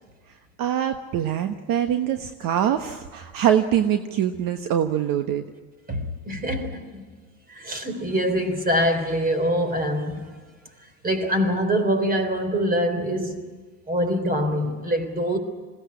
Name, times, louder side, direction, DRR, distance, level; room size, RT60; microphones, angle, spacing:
voice 1, 0.6-5.4, right 10 dB, 55° right, 1.3 m, -23 dB
voice 2, 5.9-7.1 7.5-10.3 11.0-13.4 13.9-15.4, equal, 20° right, 3.7 m, -24 dB
21.0 x 17.0 x 9.8 m
supercardioid pair, 110°, 41 cm